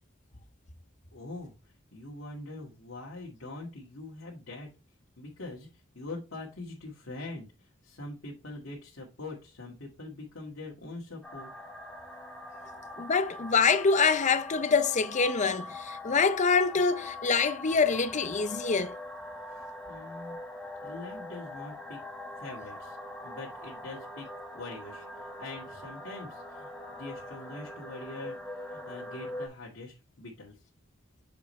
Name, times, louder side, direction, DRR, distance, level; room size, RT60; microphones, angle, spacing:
voice 1, 1.1-4.7 5.2-5.7 5.9-11.5 19.5-20.4 20.8-22.0 22.4-23.0 23.2-24.3 24.5-30.6, left 2 dB, 70° left, 1.8 m, -43 dB
sound 1, 11.2-29.5, left 1 dB, 5° left, 1.4 m, -42 dB
voice 2, 13.0-18.9, left 5 dB, 35° left, 0.6 m, -25 dB
6.9 x 4.9 x 3.1 m
head